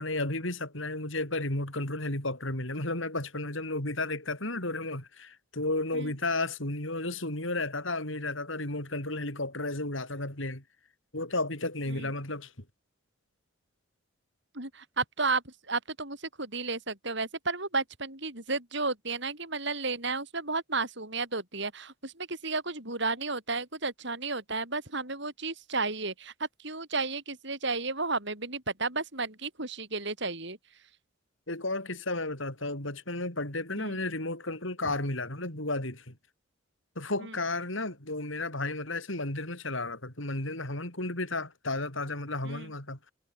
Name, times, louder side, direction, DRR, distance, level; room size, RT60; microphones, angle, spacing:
voice 1, 0.0-10.6 11.1-12.5 31.5-36.1 37.0-43.0, left 2 dB, 65° left, 5.7 m, -33 dB
voice 2, 14.5-26.3 26.6-30.6 33.8-34.0 37.2-37.3 42.4-42.7, right 3 dB, 55° right, 7.8 m, -33 dB
head